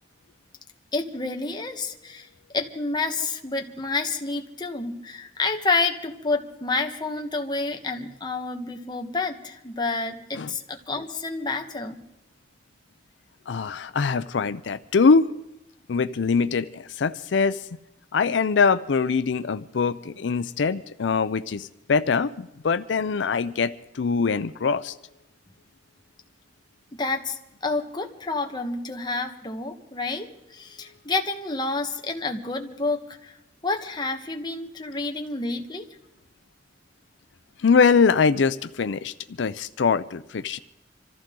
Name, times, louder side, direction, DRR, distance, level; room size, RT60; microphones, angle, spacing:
voice 1, 0.9-2.3 2.5-12.0 26.9-33.3 33.6-35.9, left 3 dB, 25° left, 3 dB, 1.3 m, -29 dB
voice 2, 13.5-15.3 15.9-17.6 18.1-24.9 37.6-40.6, left 5 dB, 85° left, 12 dB, 0.5 m, -23 dB
25.5 x 14.5 x 3.8 m, 0.84 s
head